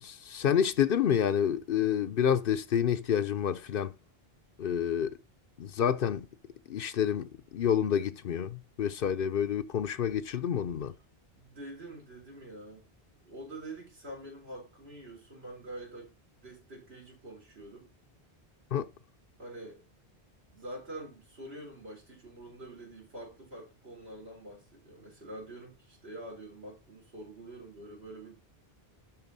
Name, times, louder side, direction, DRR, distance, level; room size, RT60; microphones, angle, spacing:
voice 1, 0.0-3.9 4.6-5.2 5.6-6.3 6.7-10.9 18.7-18.9, left 9 dB, 65° left, 0.8 m, -28 dB
voice 2, 11.3-12.8 13.2-16.1 16.4-17.9 19.4-19.8 20.5-28.4, right 1 dB, 80° right, 4.2 m, -46 dB
12.0 x 4.1 x 4.0 m
omnidirectional pair, 1.0 m